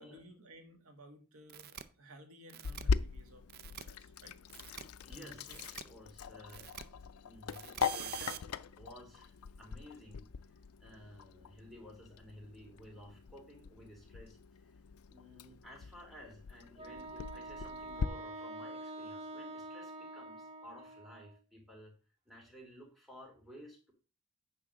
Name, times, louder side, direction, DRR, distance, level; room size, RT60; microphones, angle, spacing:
voice 1, 0.0-4.3 5.1-5.6, right 1 dB, 85° right, 5 dB, 1.7 m, -56 dB
sound 1, 1.5-1.8 2.5-2.8 3.5-3.8 4.5-4.8 5.5-5.8 6.5-6.8 7.5-8.4, right 10 dB, 50° right, 0.6 m, -45 dB
Sink (filling or washing), 2.6-18.1, left 5 dB, 85° left, 0.4 m, -41 dB
voice 2, 5.0-6.7 7.2-14.8 15.1-21.9 22.3-23.9, equal, ahead, -2 dB, 2.8 m, -55 dB
Wind instrument woodwind instrument, 16.8-21.4, right 2 dB, 30° right, 1.1 m, -46 dB
9.5 x 3.6 x 6.3 m, 0.35 s
head